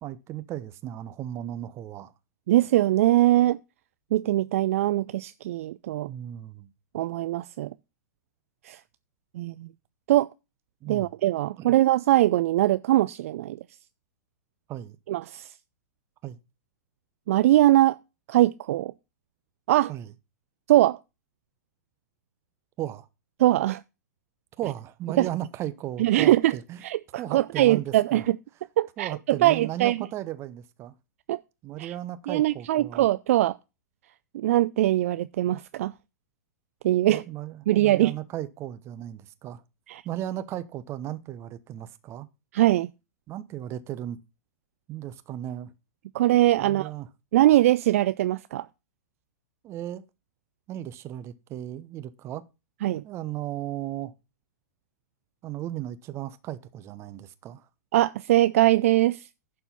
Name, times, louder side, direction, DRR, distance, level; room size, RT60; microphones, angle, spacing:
voice 1, 0.0-2.1 6.1-6.7 10.8-11.1 11.6-11.7 14.7-15.0 16.2-16.4 19.9-20.1 22.8-23.1 24.6-26.8 27.2-28.2 29.0-30.9 31.6-33.1 37.1-39.6 40.0-42.3 43.3-44.2 44.9-45.7 46.6-47.1 49.6-50.0 50.7-52.4 53.0-54.1 55.4-57.7, right 12 dB, 30° right, 0.8 m, -35 dB
voice 2, 2.5-3.6 4.1-6.1 6.9-7.7 8.6-8.8 9.3-9.7 10.1-10.3 10.9-13.6 15.1-15.5 17.3-18.0 18.3-18.9 19.7-19.9 20.7-21.0 23.4-23.8 25.2-25.3 26.0-26.5 26.8-28.4 28.8-30.1 31.3-31.4 31.8-31.9 32.3-33.6 34.3-35.9 36.8-37.2 37.7-38.1 39.9-40.0 42.5-42.9 46.1-46.9 47.3-48.7 52.8-53.0 57.9-59.3, right 15 dB, 55° right, 0.4 m, -22 dB
11.0 x 4.5 x 5.4 m
figure-of-eight pair, 105°, 9 cm